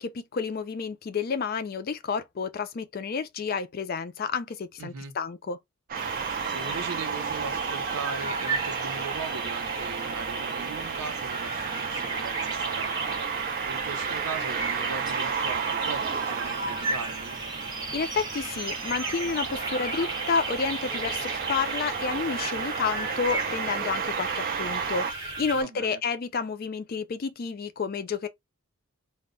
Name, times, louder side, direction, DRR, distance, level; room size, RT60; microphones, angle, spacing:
voice 1, 0.0-5.6 17.9-28.3, left 5 dB, 40° left, 0.3 m, -30 dB
voice 2, 4.8-5.1 6.4-17.4 25.5-26.0, right 4 dB, 90° right, 0.6 m, -39 dB
sound 1, 5.9-25.6, right 3 dB, 20° right, 0.7 m, -35 dB
sound 2, 5.9-25.1, right 6 dB, 40° right, 0.3 m, -32 dB
2.2 x 2.1 x 3.6 m
head